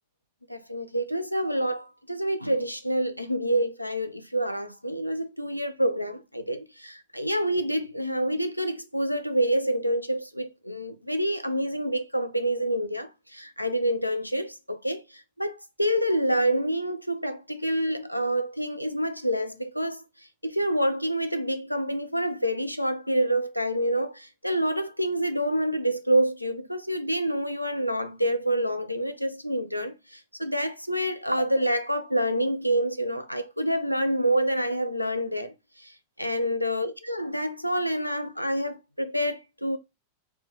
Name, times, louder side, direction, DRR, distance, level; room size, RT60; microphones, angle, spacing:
voice 1, 0.5-15.0 15.4-20.0 20.4-29.9 30.4-35.5 36.2-39.8, right 1 dB, 90° left, 0.3 m, -27 dB
3.2 x 2.1 x 3.0 m
figure-of-eight pair, 90°, 0 cm